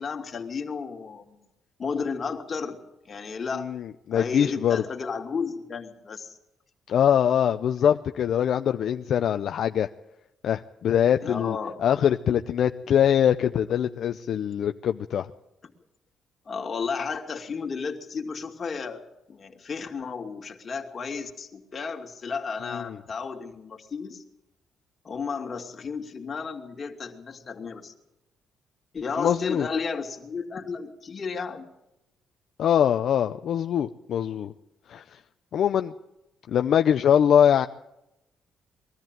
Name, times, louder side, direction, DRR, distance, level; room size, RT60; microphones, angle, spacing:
voice 1, 0.0-1.4 1.8-2.8 3.0-3.7 4.1-6.4 7.8-8.0 11.2-11.8 16.5-19.0 19.3-24.2 25.0-27.9 28.9-31.7, left 5 dB, 40° left, 3 dB, 2.6 m, -33 dB
voice 2, 4.1-4.8 6.9-9.9 10.4-15.3 22.7-22.8 29.2-29.7 32.6-34.5 34.9-35.0 35.5-35.9 36.5-37.7, left 9 dB, 65° left, 8 dB, 0.6 m, -23 dB
21.5 x 13.5 x 9.1 m, 0.90 s
cardioid pair, 90°, 0 cm